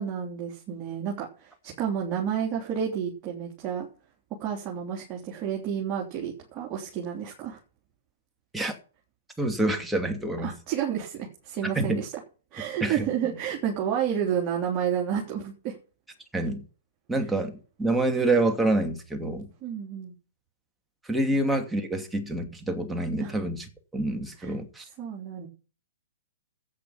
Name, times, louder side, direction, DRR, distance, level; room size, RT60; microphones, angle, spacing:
voice 1, 0.0-3.9 4.4-7.6 10.4-12.1 12.5-15.8 19.6-20.1 23.2-23.3 24.4-24.5 25.0-25.5, right 8 dB, 30° right, 3.3 m, -30 dB
voice 2, 9.4-10.5 11.8-12.0 12.8-13.1 16.3-16.6 17.1-19.5 21.0-23.7 23.9-24.9, right 2 dB, 5° right, 2.6 m, -27 dB
13.5 x 8.8 x 5.9 m
figure-of-eight pair, 115°, 0 cm